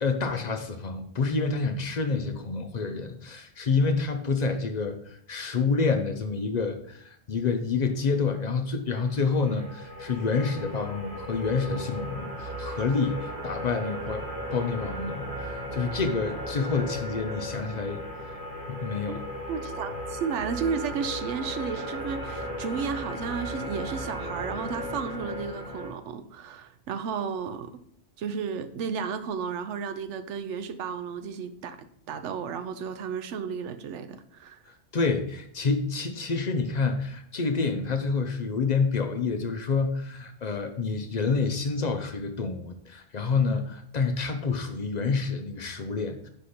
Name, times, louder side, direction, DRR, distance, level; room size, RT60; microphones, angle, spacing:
voice 1, 0.0-14.2 14.5-18.0 18.7-19.3 34.9-46.3, left 4 dB, 45° left, 6 dB, 0.6 m, -28 dB
sound 1, 9.1-25.9, equal, 10° right, 2.0 m, -36 dB
voice 2, 19.5-27.8 28.2-34.6, right 6 dB, 85° right, 10 dB, 0.9 m, -33 dB
5.4 x 4.9 x 4.3 m, 0.66 s
omnidirectional pair, 1.2 m